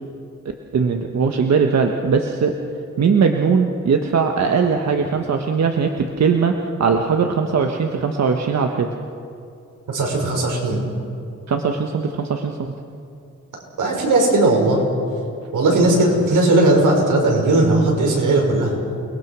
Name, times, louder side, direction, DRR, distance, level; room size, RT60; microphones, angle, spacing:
voice 1, 0.7-2.5 3.0-6.5 6.8-8.9 11.5-12.7, right 5 dB, 60° right, 3 dB, 1.4 m, -19 dB
voice 2, 9.9-10.8 13.8-14.8 15.5-18.7, right 2 dB, 85° right, 0 dB, 6.0 m, -17 dB
29.0 x 20.5 x 6.2 m, 2.6 s
wide cardioid pair, 135°, 30 cm